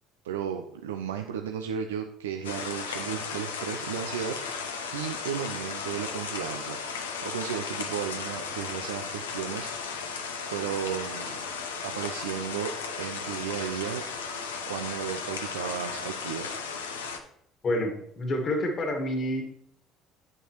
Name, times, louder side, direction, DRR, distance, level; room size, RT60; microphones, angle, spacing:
voice 1, 0.2-4.4 4.9-6.8 7.2-10.0 10.5-11.3 11.8-12.7 13.0-14.0 14.7-16.5, right 8 dB, 80° right, 5 dB, 0.5 m, -34 dB
sound 1, 2.4-17.2, left 5 dB, 85° left, 0.8 m, -35 dB
voice 2, 17.6-19.4, left 1 dB, 40° left, 3 dB, 1.8 m, -28 dB
8.2 x 7.6 x 3.1 m, 0.73 s
hypercardioid pair, 55°, 0 cm